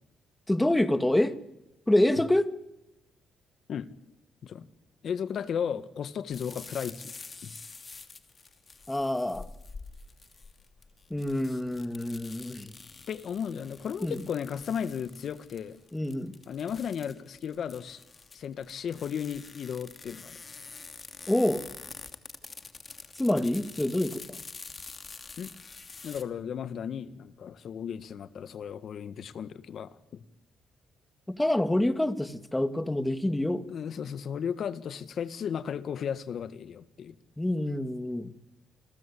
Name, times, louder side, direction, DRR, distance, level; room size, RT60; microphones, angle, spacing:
voice 1, 0.5-1.3 1.9-2.5 8.9-9.5 11.1-12.7 14.0-14.2 15.9-16.3 21.3-21.6 23.2-24.4 31.3-33.7 37.4-38.3, left 1 dB, 10° left, 2.0 m, -27 dB
voice 2, 5.0-7.1 7.4-7.5 13.1-15.8 16.5-18.0 18.3-20.4 25.4-25.5 26.0-30.2 33.7-37.1, left 8 dB, 60° left, 1.6 m, -35 dB
sound 1, 6.3-26.2, left 4 dB, 30° left, 2.7 m, -47 dB
29.0 x 22.5 x 8.6 m
cardioid pair, 90°, 0 cm